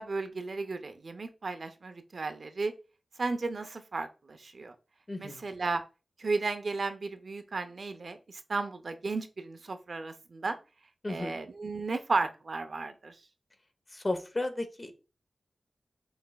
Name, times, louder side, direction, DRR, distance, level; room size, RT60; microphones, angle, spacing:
voice 1, 0.0-2.7 3.2-4.7 5.2-5.8 6.2-10.6 11.1-13.2, right 3 dB, 55° right, 8 dB, 0.5 m, -34 dB
voice 2, 5.1-5.4 11.0-11.4 13.9-14.9, left 2 dB, 30° left, 7 dB, 0.7 m, -34 dB
5.9 x 3.2 x 2.3 m, 0.32 s
wide cardioid pair, 95°, 0 cm